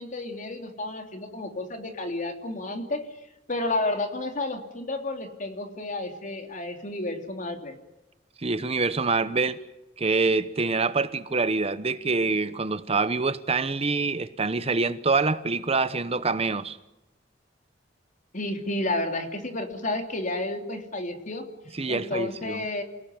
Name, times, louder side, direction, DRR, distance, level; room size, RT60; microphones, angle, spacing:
voice 1, 0.0-3.1 3.5-7.8 18.3-21.5 21.9-22.8, left 2 dB, 45° left, 3.2 m, -31 dB
voice 2, 8.4-9.6 10.0-16.8 21.7-22.6, right 3 dB, 35° right, 0.9 m, -25 dB
28.5 x 18.0 x 9.5 m
head